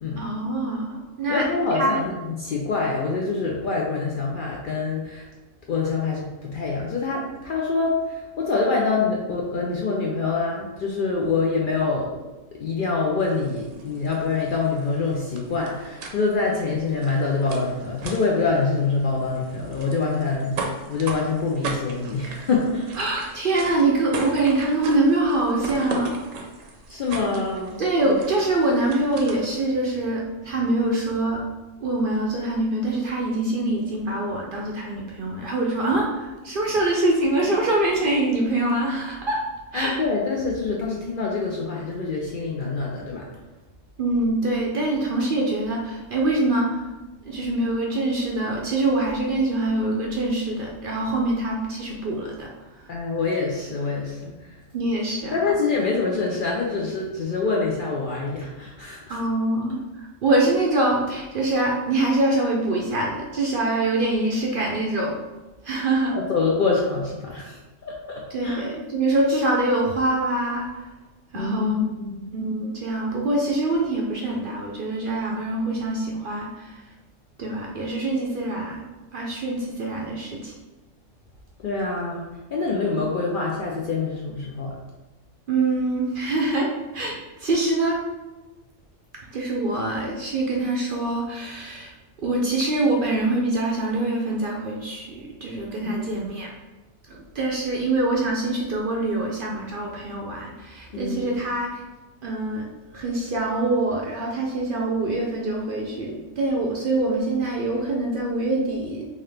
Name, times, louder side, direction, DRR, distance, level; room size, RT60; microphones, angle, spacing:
voice 1, 0.2-1.5 1.8-2.0 23.0-26.1 27.8-31.4 31.8-39.4 39.7-40.0 44.0-46.8 47.3-52.5 54.7-55.4 59.1-59.8 60.2-65.1 65.6-66.2 68.3-70.8 71.3-71.8 72.3-76.8 77.4-78.8 79.1-80.5 85.5-88.0 89.3-91.9 92.2-96.5 97.1-101.8 102.2-102.6 102.9-109.1, right 2 dB, 60° right, -1 dB, 0.6 m, -24 dB
voice 2, 1.3-5.3 5.7-12.1 12.6-23.0 26.9-27.8 39.7-43.3 52.9-54.6 55.3-59.2 66.1-68.6 71.3-72.3 81.6-84.8 95.8-96.2 100.9-101.3, left 4 dB, 60° left, -2 dB, 0.5 m, -25 dB
sound 1, 13.2-29.7, right 3 dB, 85° right, 1.0 m, -38 dB
3.7 x 2.8 x 3.3 m, 1.2 s
omnidirectional pair, 1.3 m